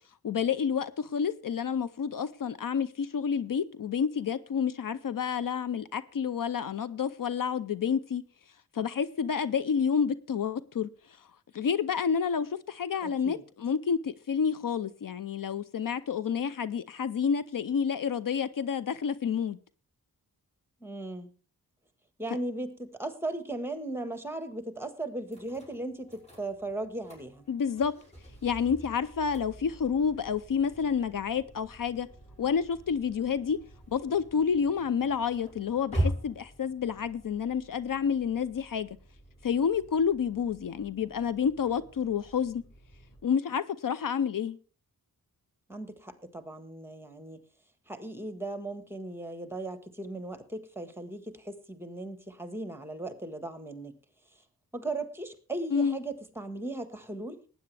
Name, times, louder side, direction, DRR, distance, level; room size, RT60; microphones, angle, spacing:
voice 1, 0.2-8.2 8.7-10.9 11.5-19.6 27.5-27.9 28.4-32.1 32.4-33.6 33.9-38.9 39.4-42.6 43.2-44.6 55.7-56.0, left 7 dB, 65° left, 0.6 m, -29 dB
voice 2, 13.0-13.4 20.8-21.3 22.2-27.4 45.7-47.4 47.9-53.9 54.7-57.4, right 2 dB, 5° right, 1.5 m, -37 dB
sound 1, 25.3-43.2, right 1 dB, 20° left, 5.6 m, -42 dB
19.0 x 9.2 x 3.3 m
wide cardioid pair, 135°, 36 cm